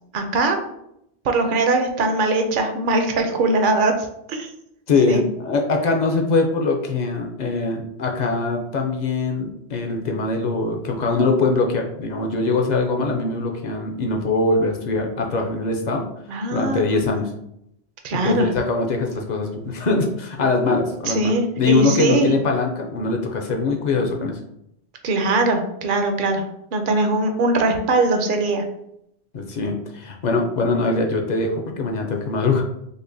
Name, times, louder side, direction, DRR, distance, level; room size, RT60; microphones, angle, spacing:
voice 1, 0.1-0.6 1.2-3.9 4.3-4.5 5.1-5.2 16.3-17.2 18.0-18.5 21.1-22.3 25.0-26.4 26.7-28.6, right 2 dB, 60° right, 5 dB, 0.6 m, -21 dB
voice 2, 4.9-16.1 16.5-17.3 18.1-24.4 29.3-32.6, left 3 dB, 55° left, 2 dB, 0.5 m, -22 dB
5.2 x 2.1 x 2.5 m, 0.78 s
omnidirectional pair, 1.1 m